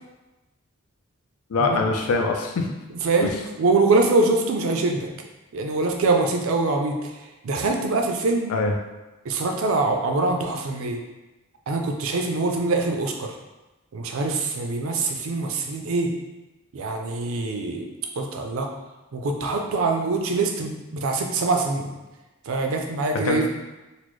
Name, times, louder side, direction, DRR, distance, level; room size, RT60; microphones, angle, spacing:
voice 1, 1.5-2.7 3.2-3.3 8.5-8.7 23.2-23.5, left 3 dB, 75° left, 3 dB, 0.4 m, -23 dB
voice 2, 2.9-5.1 5.5-7.1 7.4-8.5 9.2-11.0 11.7-13.3 13.9-16.1 16.7-17.9 18.2-18.7 19.1-21.9 22.5-23.5, right 3 dB, 65° right, 3 dB, 0.4 m, -24 dB
4.0 x 2.0 x 3.1 m, 1.1 s
head